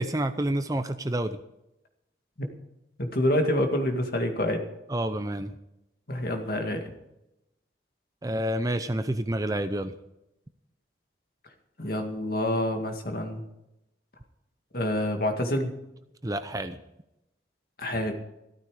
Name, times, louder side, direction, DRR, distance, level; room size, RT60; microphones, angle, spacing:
voice 1, 0.0-1.4 4.9-5.5 8.2-9.9 16.2-16.8, right 1 dB, 20° right, 10 dB, 0.5 m, -29 dB
voice 2, 3.0-4.7 6.1-6.9 11.8-13.4 14.7-15.8 17.8-18.1, left 1 dB, 50° left, 4 dB, 2.1 m, -27 dB
15.0 x 13.0 x 4.9 m, 0.90 s
head